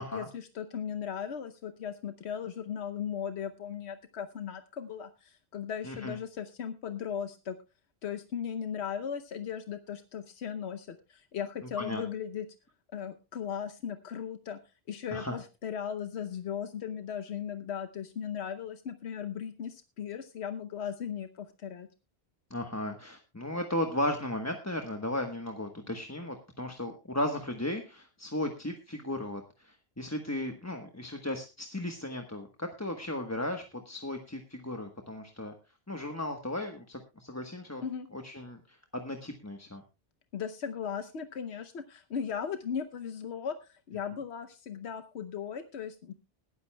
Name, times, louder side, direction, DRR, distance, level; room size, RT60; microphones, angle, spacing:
voice 1, 0.0-7.6 8.0-12.5 12.9-14.6 14.9-21.9 37.8-38.1 40.3-46.1, left 8 dB, 85° left, 9 dB, 1.1 m, -37 dB
voice 2, 5.8-6.2 11.8-12.0 15.1-15.4 22.5-35.5 35.9-37.8 38.1-39.8, left 1 dB, 15° left, 4 dB, 1.2 m, -35 dB
21.0 x 12.0 x 2.2 m, 0.29 s
omnidirectional pair, 1.1 m